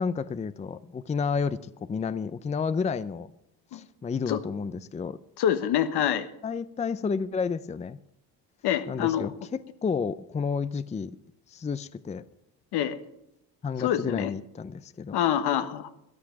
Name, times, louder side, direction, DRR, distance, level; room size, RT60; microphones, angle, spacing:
voice 1, 0.0-3.3 3.7-5.2 6.4-8.0 8.9-11.1 11.5-12.2 13.6-15.2, left 5 dB, 15° left, 0.5 m, -31 dB
voice 2, 5.4-6.3 8.6-9.3 12.7-13.0 13.8-14.3 15.1-15.9, left 10 dB, 75° left, 1.2 m, -26 dB
13.5 x 10.0 x 6.0 m
cardioid pair, 85°, 40 cm